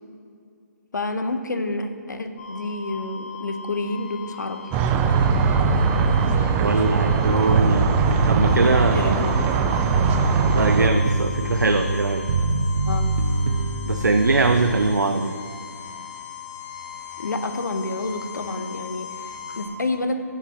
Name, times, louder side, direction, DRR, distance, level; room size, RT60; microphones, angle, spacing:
voice 1, 0.9-4.6 8.9-9.3 12.8-13.1 17.2-20.2, left 2 dB, 80° left, 8 dB, 0.8 m, -29 dB
sound 1, 2.4-19.7, left 7 dB, 40° left, 2.0 m, -39 dB
sound 2, 4.7-10.9, right 7 dB, 15° right, 0.4 m, -22 dB
Bass guitar, 5.1-14.7, right 2 dB, 50° right, 0.7 m, -24 dB
voice 2, 6.5-7.9 8.3-9.4 10.5-12.3 13.8-15.4, right 3 dB, 90° right, 6 dB, 0.5 m, -21 dB
13.0 x 7.4 x 2.9 m, 2.3 s
figure-of-eight pair, 140°, 10 cm